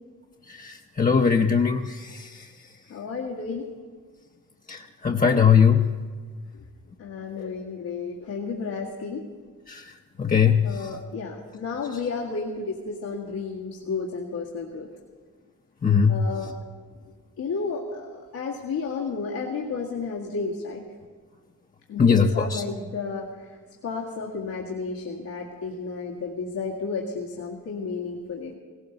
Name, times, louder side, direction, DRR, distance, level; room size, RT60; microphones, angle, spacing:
voice 1, 0.5-2.3 4.7-5.8 9.7-9.8 10.2-10.7 15.8-16.2 22.0-22.6, left 6 dB, 25° left, 2 dB, 0.7 m, -20 dB
voice 2, 2.9-3.7 6.5-6.6 7.0-9.2 10.6-14.9 16.1-16.6 17.4-20.8 21.9-23.5 23.8-28.5, left 4 dB, 90° left, -5 dB, 2.0 m, -32 dB
18.0 x 17.5 x 4.0 m, 1.5 s
cardioid pair, 75°, 34 cm